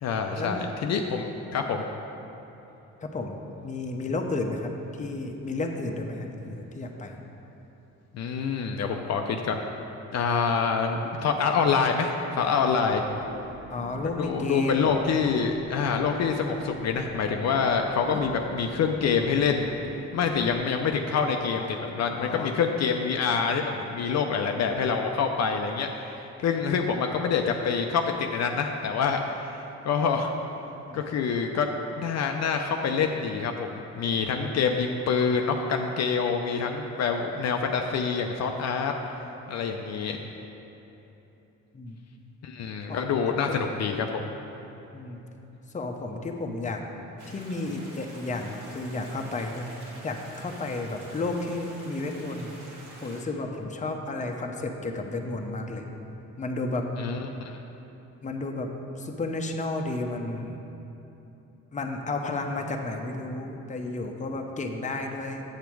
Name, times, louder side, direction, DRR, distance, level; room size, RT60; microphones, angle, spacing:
voice 1, 0.0-1.8 8.1-9.6 10.1-13.0 14.2-19.7 20.1-29.2 29.8-30.3 30.9-38.9 39.5-40.2 42.4-44.3 57.0-57.6, left 5 dB, 60° left, 3 dB, 0.6 m, -26 dB
voice 2, 3.0-7.2 13.7-14.9 18.0-18.2 21.5-21.8 22.1-22.5 30.9-31.0 41.7-42.0 42.9-43.0 44.9-45.2 45.7-46.8 47.3-52.5 53.0-55.8 56.4-56.9 58.2-58.7 59.0-60.6 61.7-65.4, left 2 dB, 25° left, 3 dB, 0.8 m, -32 dB
sound 1, 12.8-20.6, right 3 dB, 40° right, 0.9 m, -45 dB
sound 2, 47.2-53.2, right 1 dB, 80° right, 1.8 m, -47 dB
7.3 x 7.0 x 4.6 m, 3.0 s
cardioid pair, 90°, 30 cm